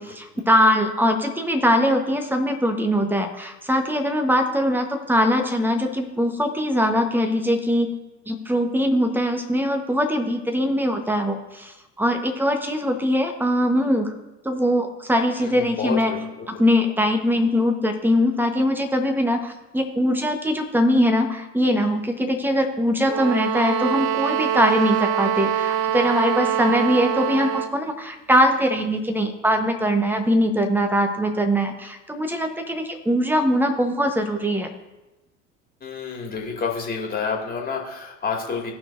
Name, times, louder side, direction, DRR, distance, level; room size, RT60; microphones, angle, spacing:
voice 1, 0.0-7.9 8.3-14.1 14.4-16.1 16.6-34.7, equal, 5° right, 5 dB, 1.1 m, -22 dB
voice 2, 15.4-16.2 35.8-38.7, left 5 dB, 25° left, -1 dB, 2.2 m, -29 dB
sound 1, 23.0-27.8, right 9 dB, 50° right, 0.6 m, -24 dB
16.5 x 5.9 x 2.6 m, 1.0 s
figure-of-eight pair, 65°, 37 cm